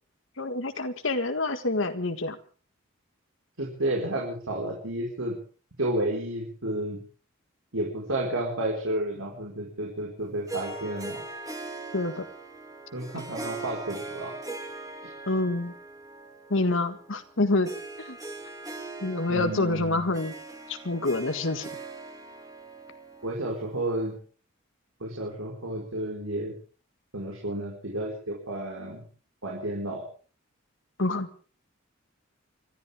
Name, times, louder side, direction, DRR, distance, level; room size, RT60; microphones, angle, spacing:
voice 1, 0.4-2.4 11.9-12.2 13.2-13.3 15.3-15.7 16.5-17.7 18.0-18.2 19.0-20.3 20.7-21.7 31.0-31.3, left 2 dB, 65° left, 9 dB, 1.7 m, -27 dB
voice 2, 3.6-5.4 5.8-7.0 7.7-11.2 12.9-14.3 19.3-20.1 23.2-24.2 25.0-26.5 27.1-29.1 29.4-30.0, right 1 dB, 85° right, -2 dB, 5.0 m, -31 dB
Harp, 10.5-24.1, right 3 dB, 15° right, 2.3 m, -41 dB
30.0 x 13.5 x 3.6 m, 0.39 s
head